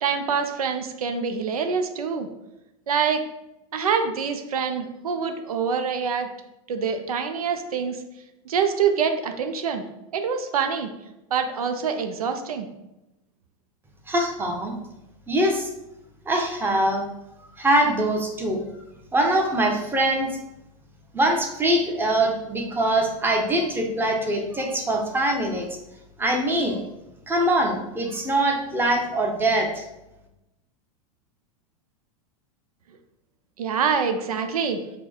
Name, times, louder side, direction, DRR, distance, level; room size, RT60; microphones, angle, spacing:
voice 1, 0.0-2.3 2.9-3.2 3.7-6.3 6.7-8.0 8.5-9.8 10.1-10.9 11.3-12.7 33.6-34.8, right 6 dB, 90° right, 6 dB, 0.5 m, -25 dB
voice 2, 14.1-14.7 15.3-15.7 16.3-17.1 17.6-18.6 19.1-20.3 21.1-25.7 26.2-26.8 27.3-29.9, right 1 dB, 10° right, 1 dB, 0.8 m, -23 dB
4.3 x 2.2 x 4.3 m, 0.91 s
hypercardioid pair, 105°, 18 cm